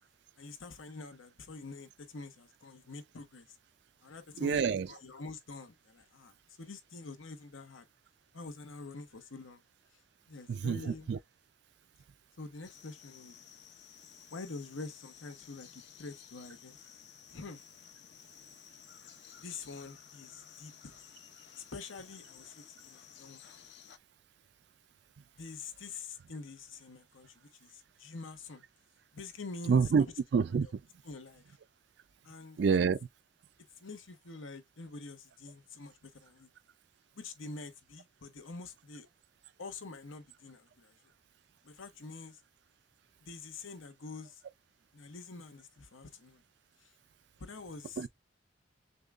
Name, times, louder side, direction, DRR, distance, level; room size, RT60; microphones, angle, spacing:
voice 1, 0.4-3.6 4.0-7.9 8.3-9.6 10.3-11.1 12.4-13.4 14.3-16.8 17.3-17.6 19.4-20.9 21.6-23.4 25.3-28.6 29.1-29.8 30.5-30.7 31.0-31.6 32.2-32.6 33.8-36.5 37.2-39.1 39.6-40.9 41.6-42.4 43.2-44.4 44.9-46.4 46.8-46.9 47.4-48.0, left 3 dB, 85° left, 1.0 m, -46 dB
voice 2, 4.4-4.9 10.5-11.2 29.7-30.1 30.3-30.8 32.6-33.0 48.0-48.1, right 6 dB, 60° right, 0.3 m, -27 dB
sound 1, 12.6-24.0, left 8 dB, 60° left, 0.6 m, -55 dB
6.6 x 2.3 x 2.4 m
head